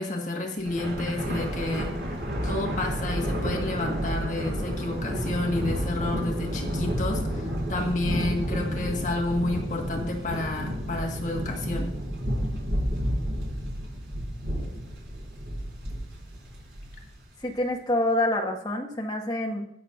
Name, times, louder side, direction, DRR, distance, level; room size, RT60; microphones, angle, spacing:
voice 1, 0.0-1.9 2.4-11.9, left 2 dB, 45° left, 1 dB, 1.6 m, -30 dB
Thunder, 0.6-17.2, equal, 75° right, 4.4 m, -30 dB
voice 2, 17.4-19.6, left 1 dB, 25° left, 0 dB, 1.6 m, -27 dB
20.0 x 6.8 x 2.6 m, 0.74 s
head